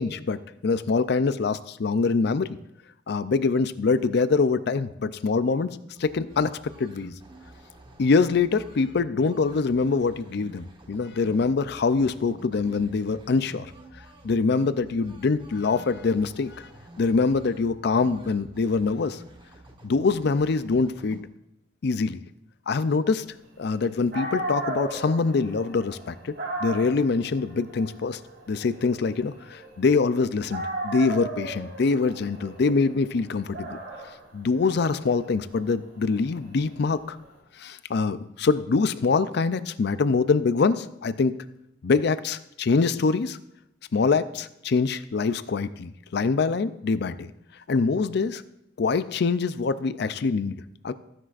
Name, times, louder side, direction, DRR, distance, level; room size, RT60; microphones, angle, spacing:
voice 1, 0.0-2.6 3.1-5.7 6.0-7.1 8.0-13.7 14.2-16.7 17.0-19.2 19.8-21.3 21.8-22.2 22.7-23.2 23.6-26.3 26.6-28.2 28.5-33.8 34.3-37.2 37.6-41.4 41.8-43.4 43.9-47.3 47.7-48.4 48.8-50.9, left 4 dB, 65° left, 14 dB, 0.4 m, -24 dB
sound 1, 6.0-21.2, right 1 dB, 25° right, 1.2 m, -49 dB
Dog, 23.8-23.9 24.1-30.1 30.5-37.3, right 2 dB, 65° right, 4.3 m, -36 dB
14.5 x 9.9 x 2.5 m, 0.83 s
head